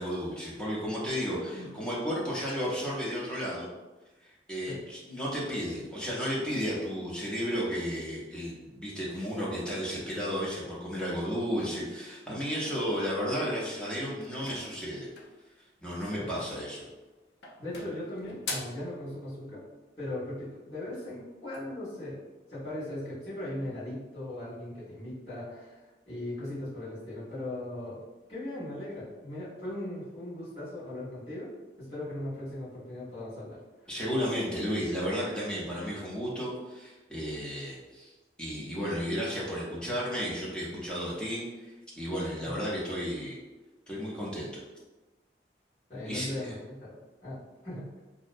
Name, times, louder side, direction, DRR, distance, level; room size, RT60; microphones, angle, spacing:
voice 1, 0.0-3.7 4.2-15.1 15.8-16.8 33.9-38.1 38.4-41.4 42.0-43.4 43.9-44.6 46.1-46.5, equal, 5° left, -7 dB, 0.6 m, -33 dB
sound 1, 14.2-15.4 16.7-17.1 17.4-18.9, left 3 dB, 75° left, 0.4 m, -41 dB
voice 2, 16.0-16.3 17.6-19.6 20.0-22.2 22.5-25.8 26.1-28.0 28.3-31.5 31.8-33.6 42.4-42.5 45.9-48.0, left 1 dB, 35° left, -13 dB, 1.2 m, -38 dB
2.6 x 2.0 x 2.5 m, 1.2 s
head